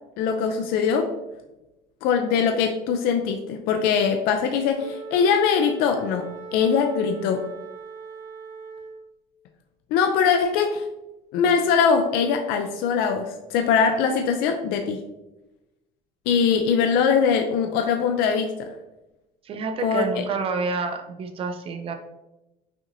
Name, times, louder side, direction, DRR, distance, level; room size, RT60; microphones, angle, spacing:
voice 1, 0.2-1.1 2.0-7.4 9.9-10.8 11.3-15.0 16.3-18.7 19.8-20.2, left 6 dB, 70° left, 4 dB, 0.4 m, -22 dB
Wind instrument woodwind instrument, 4.7-9.1, right 5 dB, 60° right, 1.2 m, -40 dB
voice 2, 19.4-21.9, right 4 dB, 35° right, 7 dB, 0.4 m, -28 dB
5.7 x 2.6 x 2.7 m, 0.98 s
cardioid pair, 150°, 16 cm